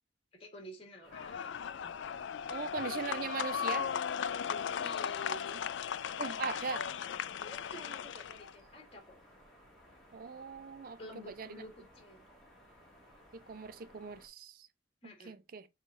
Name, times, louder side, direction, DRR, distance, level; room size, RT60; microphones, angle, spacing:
voice 1, 0.3-1.6 4.5-5.6 7.4-9.2 11.0-12.2 15.0-15.4, left 1 dB, 30° left, 2.2 m, -50 dB
sound 1, 1.0-14.3, equal, ahead, 2.6 m, -60 dB
sound 2, 1.1-8.5, left 8 dB, 65° left, 0.4 m, -37 dB
voice 2, 2.5-3.9 6.2-6.9 10.1-11.0 11.3-11.6 13.3-14.7 15.3-15.7, right 5 dB, 45° right, 0.4 m, -40 dB
6.3 x 4.1 x 4.0 m
head